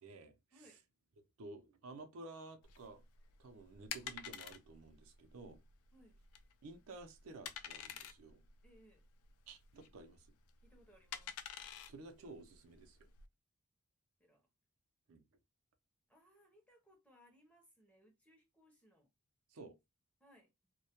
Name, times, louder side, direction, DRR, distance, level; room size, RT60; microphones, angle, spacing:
voice 1, 0.0-0.3 1.4-3.0 3.4-5.6 6.6-8.4 9.5-10.3 11.9-13.1 15.1-15.2 19.5-19.8, right 3 dB, 65° right, 0.5 m, -53 dB
sound 1, 2.6-13.3, left 8 dB, 75° left, 0.3 m, -50 dB
voice 2, 8.6-9.1 10.6-11.4 14.2-14.4 16.1-19.1 20.2-20.5, equal, 5° left, 0.6 m, -66 dB
2.1 x 2.1 x 2.8 m
head